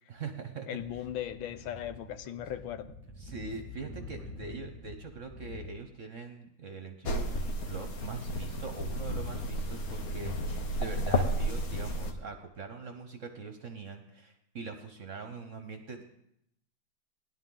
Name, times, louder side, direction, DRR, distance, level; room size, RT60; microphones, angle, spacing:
voice 1, 0.1-0.8 3.2-16.0, right 4 dB, 50° right, 6 dB, 1.0 m, -43 dB
voice 2, 0.7-2.9, left 11 dB, 80° left, 12 dB, 1.5 m, -38 dB
Speech / Wind, 0.8-5.7, left 1 dB, 5° left, 1.4 m, -46 dB
sound 1, 7.0-12.1, equal, 50° left, 1.5 m, -32 dB
18.5 x 11.5 x 3.8 m, 0.78 s
omnidirectional pair, 2.2 m